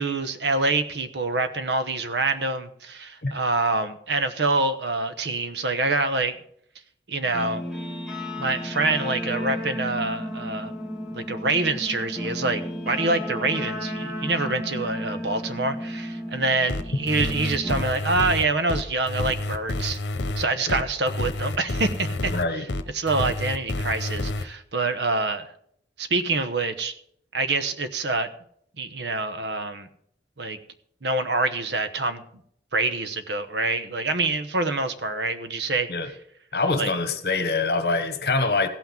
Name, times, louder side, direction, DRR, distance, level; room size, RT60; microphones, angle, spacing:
voice 1, 0.0-6.4 7.1-7.7 8.4-10.7 11.1-20.0 20.4-22.3 22.9-25.5 26.0-26.9 27.3-28.3 28.8-29.9 30.4-30.6 31.0-32.2 32.7-35.9 36.8-36.9, right 3 dB, 75° right, 1.0 m, -26 dB
Guitar, 7.2-17.8, equal, 5° right, 1.5 m, -33 dB
sound 1, 16.7-24.4, left 2 dB, 80° left, 1.0 m, -29 dB
voice 2, 22.3-22.6 35.9-36.1 36.5-38.7, left 3 dB, 60° left, 1.3 m, -24 dB
15.5 x 6.0 x 7.1 m
head